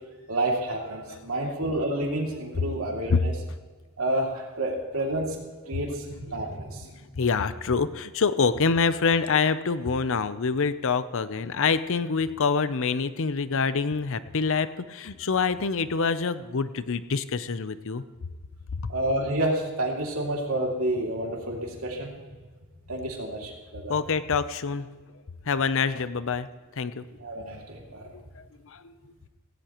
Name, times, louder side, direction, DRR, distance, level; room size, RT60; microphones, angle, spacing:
voice 1, 0.3-3.3 4.0-5.4 5.7-6.9 18.9-22.1 22.9-24.0 27.2-28.1, right 1 dB, 75° right, -1 dB, 2.6 m, -29 dB
voice 2, 1.1-1.5 2.3-2.8 3.1-3.2 5.7-5.8 6.5-6.6 7.2-18.0 18.7-18.9 23.9-24.9 25.4-26.5 26.8-27.0 28.1-28.9, left 5 dB, 65° left, 13 dB, 0.7 m, -26 dB
17.0 x 16.5 x 3.0 m, 1.4 s
head